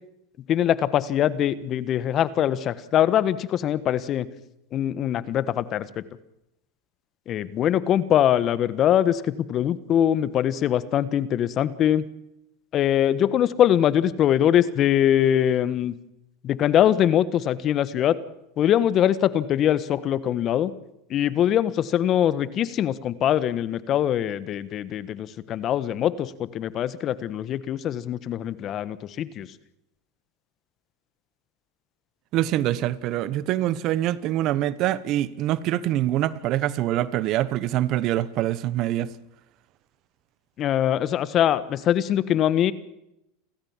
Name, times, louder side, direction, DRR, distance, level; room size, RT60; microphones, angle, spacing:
voice 1, 0.5-4.3 4.7-5.9 7.3-12.0 12.7-15.9 16.4-18.2 18.6-20.7 21.1-29.5 40.6-42.7, left 10 dB, 40° left, 1.4 m, -22 dB
voice 2, 32.3-39.1, right 13 dB, 50° right, 1.1 m, -25 dB
30.0 x 13.5 x 7.4 m
hypercardioid pair, 105°, 0 cm